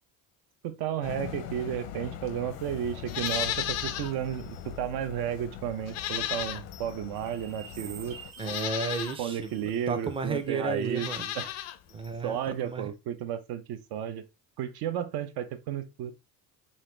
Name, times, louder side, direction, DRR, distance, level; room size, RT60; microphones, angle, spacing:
voice 1, 0.6-8.2 9.2-11.1 11.4-11.5 12.2-14.2 14.6-16.1, right 10 dB, 80° right, 0.7 m, -33 dB
sound 1, 1.0-8.3, left 9 dB, 85° left, 0.7 m, -42 dB
Livestock farm animals working animals, 3.0-4.1 4.5-4.6 5.8-6.9 7.7-7.8 8.4-9.2 10.8-11.8 12.0-12.1, left 12 dB, 45° left, 0.4 m, -33 dB
sound 2, 7.1-10.6 11.0-11.1, right 8 dB, 60° right, 1.6 m, -50 dB
voice 2, 8.4-11.3 11.9-12.9, right 4 dB, 15° right, 0.4 m, -33 dB
5.6 x 2.5 x 3.2 m
cardioid pair, 165°, 37 cm